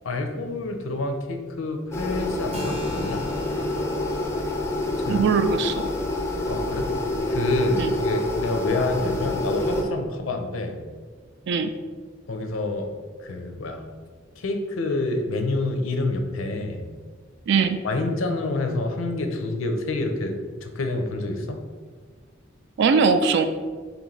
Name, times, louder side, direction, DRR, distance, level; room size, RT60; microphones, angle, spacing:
voice 1, 0.0-3.2 5.0-5.3 6.5-6.9 7.3-10.8 12.3-12.9 13.2-13.8 14.4-16.8 17.8-20.4 20.6-21.6, left 2 dB, 90° left, 5 dB, 0.5 m, -27 dB
sound 1, 1.9-9.8, left 1 dB, 15° left, 0.4 m, -27 dB
Keyboard (musical), 2.5-9.9, left 1 dB, 30° right, 0.7 m, -40 dB
voice 2, 5.1-5.9 7.8-7.9 11.5-11.7 17.5-17.8 22.8-23.5, right 5 dB, 60° right, 9 dB, 0.3 m, -20 dB
3.4 x 3.1 x 3.8 m, 1.5 s
head